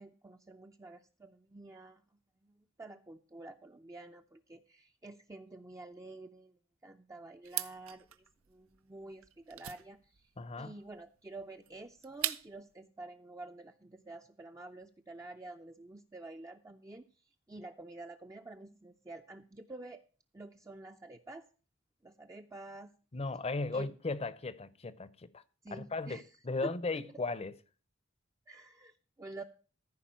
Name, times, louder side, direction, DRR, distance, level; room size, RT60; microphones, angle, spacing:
voice 1, 0.0-2.0 2.4-6.6 6.8-8.1 8.5-10.3 10.6-17.1 17.5-20.0 20.3-21.4 22.0-22.9 23.7-23.9 25.6-26.3 26.6-27.0 28.5-29.4, right 2 dB, 15° right, 0.5 m, -49 dB
sound 1, 7.4-12.7, right 13 dB, 85° right, 0.7 m, -41 dB
voice 2, 10.4-10.7 23.1-25.4 25.7-27.5, left 3 dB, 30° left, 0.7 m, -36 dB
14.5 x 4.9 x 7.5 m
head